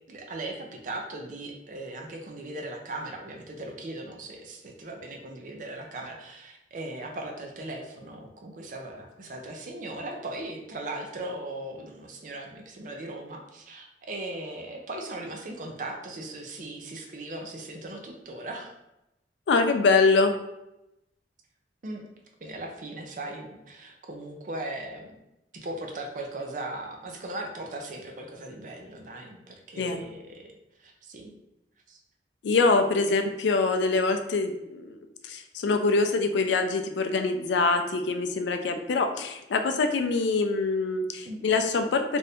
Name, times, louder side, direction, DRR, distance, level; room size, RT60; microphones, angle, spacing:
voice 1, 0.1-18.7 21.8-22.1 22.4-25.1 25.5-30.5 30.8-31.3 31.9-32.0 41.3-41.5, right 2 dB, 45° right, 2 dB, 0.5 m, -38 dB
voice 2, 19.5-20.3 29.8-30.0 32.4-35.0 35.2-42.2, left 3 dB, 85° left, 7 dB, 0.4 m, -24 dB
2.7 x 2.6 x 3.3 m, 0.90 s
head